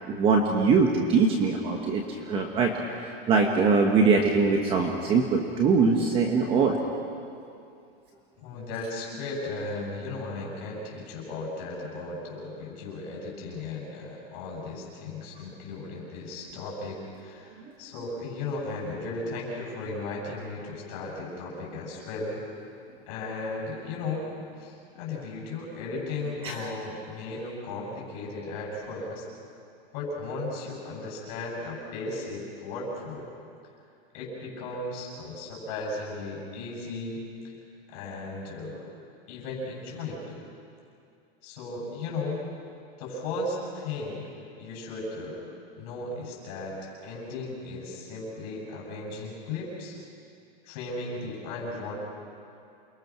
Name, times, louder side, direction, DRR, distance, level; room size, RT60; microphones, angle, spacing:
voice 1, 0.1-2.7 3.0-6.7 26.4-26.7, right 4 dB, 20° right, 2 dB, 1.3 m, -22 dB
voice 2, 8.4-22.4 23.1-24.3 24.6-29.2 29.9-33.3 34.1-37.5 37.9-38.9 39.3-40.4 41.4-42.4 43.0-44.3 44.6-45.5 45.8-50.0 50.6-52.0, left 2 dB, 35° left, -3 dB, 7.5 m, -36 dB
28.5 x 23.0 x 6.1 m, 2.5 s
supercardioid pair, 170°, 30 cm